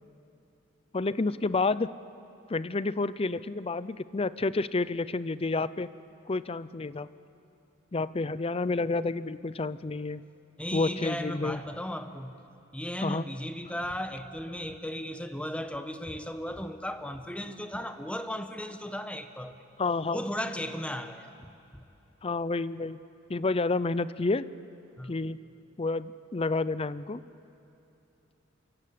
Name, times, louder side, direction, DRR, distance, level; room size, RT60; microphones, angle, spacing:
voice 1, 0.9-1.9 2.5-5.9 6.3-7.1 7.9-10.2 10.7-11.6 13.0-13.2 19.8-20.2 22.2-23.0 23.3-24.5 25.1-25.4 25.8-27.2, left 3 dB, 30° left, 16 dB, 0.5 m, -29 dB
voice 2, 10.6-12.3 12.7-19.5 20.1-21.8 25.0-25.1, equal, 5° left, 8 dB, 1.2 m, -36 dB
27.5 x 24.0 x 8.5 m, 3.0 s
head